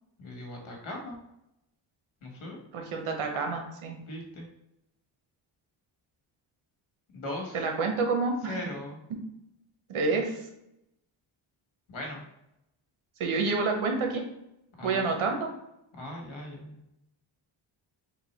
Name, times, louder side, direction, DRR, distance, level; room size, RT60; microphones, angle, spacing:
voice 1, 0.2-1.2 2.2-2.6 4.1-4.5 7.1-7.6 8.4-9.0 11.9-12.2 14.8-15.1 15.9-16.8, left 1 dB, 75° left, 0 dB, 1.5 m, -39 dB
voice 2, 2.7-3.9 7.5-8.6 9.9-10.3 13.2-14.2 14.8-15.5, right 4 dB, 80° right, 3 dB, 1.0 m, -28 dB
3.7 x 2.7 x 4.2 m, 0.83 s
wide cardioid pair, 120°, 49 cm